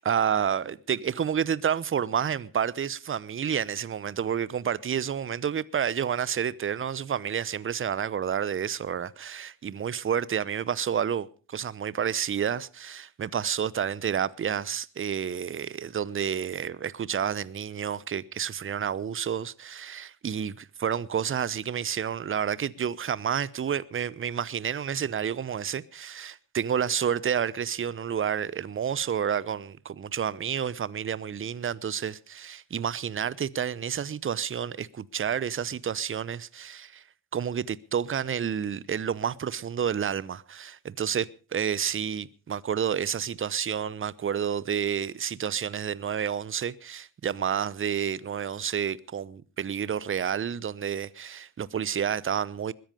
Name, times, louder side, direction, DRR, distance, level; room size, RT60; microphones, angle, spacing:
voice 1, 0.0-37.0 37.3-52.7, right 8 dB, 25° right, 0.9 m, -30 dB
21.0 x 10.5 x 5.2 m
hypercardioid pair, 50°, 48 cm